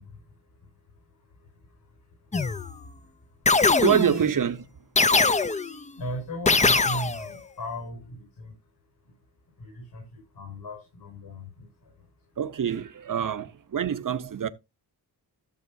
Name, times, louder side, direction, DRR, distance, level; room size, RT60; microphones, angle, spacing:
voice 1, 0.0-3.8 4.2-4.3 5.0-12.4, equal, 75° left, 6.9 m, -40 dB
sound 1, 2.3-2.8 3.5-4.3 5.0-5.8 6.5-7.3, left 4 dB, 20° left, 0.4 m, -22 dB
voice 2, 3.8-4.6 12.4-13.5 13.7-14.5, right 8 dB, 50° right, 0.8 m, -25 dB
15.5 x 7.3 x 2.7 m
wide cardioid pair, 130°, 41 cm